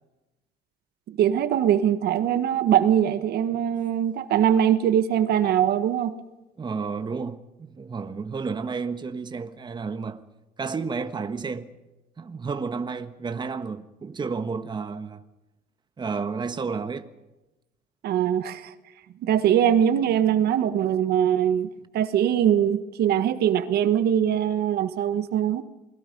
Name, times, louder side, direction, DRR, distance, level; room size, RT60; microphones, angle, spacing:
voice 1, 1.1-6.1 18.0-18.7 19.2-21.7 21.9-25.6, right 10 dB, 70° right, 1.4 m, -22 dB
voice 2, 6.6-10.2 10.6-11.7 12.2-15.2 16.0-17.1, right 5 dB, 25° right, 1.4 m, -31 dB
28.0 x 21.5 x 5.3 m
cardioid pair, 110°, 17 cm